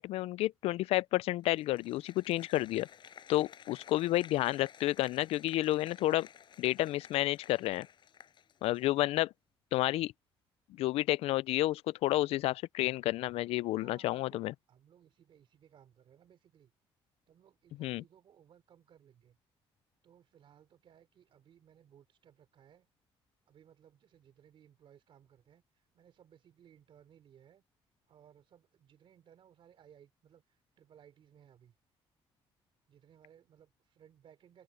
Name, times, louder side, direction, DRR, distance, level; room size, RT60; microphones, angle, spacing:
voice 1, 0.0-2.9 3.3-6.3 6.6-7.9 8.6-9.3 9.7-10.1 10.8-14.5 17.8-18.0, left 16 dB, 80° left, 0.4 m, -30 dB
Applause, 1.4-9.0, left 8 dB, 50° left, 5.5 m, -55 dB
voice 2, 13.7-14.4 14.7-16.7 17.3-19.4 20.0-22.9 23.5-27.6 28.1-31.8 32.9-34.6, right 9 dB, 60° right, 3.7 m, -62 dB
open air
cardioid pair, 115°, 10 cm